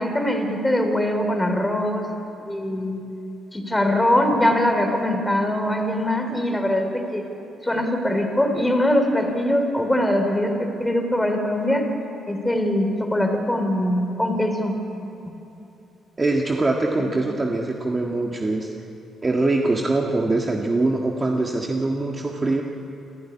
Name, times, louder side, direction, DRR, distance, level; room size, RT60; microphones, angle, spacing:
voice 1, 0.0-2.0 2.5-3.0 3.5-7.3 7.6-11.9 12.3-14.7, left 1 dB, 10° left, 5 dB, 3.3 m, -22 dB
voice 2, 16.2-18.7 19.2-22.6, right 2 dB, 25° right, 0 dB, 1.7 m, -23 dB
27.5 x 10.5 x 10.0 m, 2.9 s
cardioid pair, 90°, 0 cm